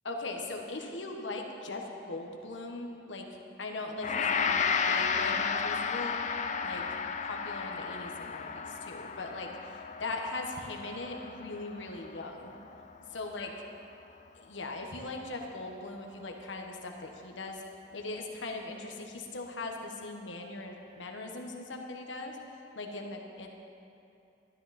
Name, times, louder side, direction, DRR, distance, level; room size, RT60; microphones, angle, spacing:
voice 1, 0.0-3.3 3.6-6.2 6.6-6.9 7.2-12.6 13.1-13.5 14.3-17.6 17.9-22.3 22.7-23.5, left 2 dB, 85° left, 2 dB, 1.3 m, -40 dB
Gong, 4.0-13.2, left 6 dB, 40° left, 0.5 m, -33 dB
13.0 x 12.0 x 4.2 m, 2.7 s
head